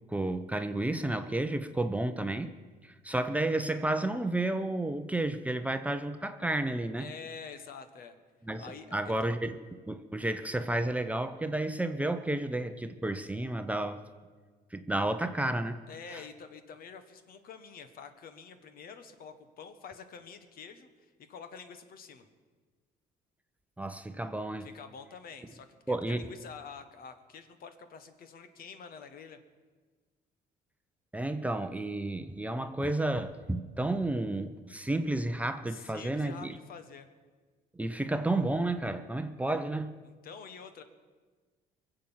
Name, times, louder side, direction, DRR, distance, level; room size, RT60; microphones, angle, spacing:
voice 1, 0.1-2.5 2.8-7.1 8.4-8.7 8.9-14.0 14.7-15.8 16.1-16.2 23.8-24.7 25.9-26.2 31.1-36.6 37.7-39.9, right 2 dB, 10° right, 8 dB, 0.7 m, -31 dB
voice 2, 7.0-8.1 8.6-9.0 15.9-22.3 24.6-29.4 35.7-37.1 40.0-40.8, left 6 dB, 60° left, 9 dB, 1.4 m, -47 dB
22.5 x 7.8 x 7.3 m, 1.4 s
cardioid pair, 110°, 17 cm